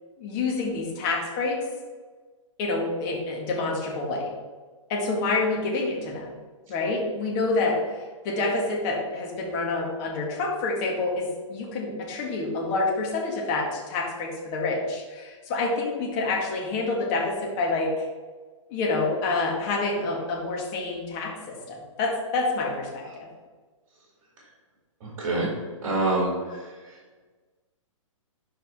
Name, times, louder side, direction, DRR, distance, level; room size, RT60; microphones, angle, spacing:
voice 1, 0.2-1.6 2.6-4.3 4.9-6.3 6.7-7.8 8.2-18.0 18.7-23.3, left 3 dB, 35° left, -2 dB, 1.9 m, -27 dB
voice 2, 25.0-25.5 25.8-27.0, right 2 dB, 45° right, -4 dB, 2.3 m, -27 dB
12.0 x 4.3 x 3.6 m, 1.4 s
hypercardioid pair, 135°, 17 cm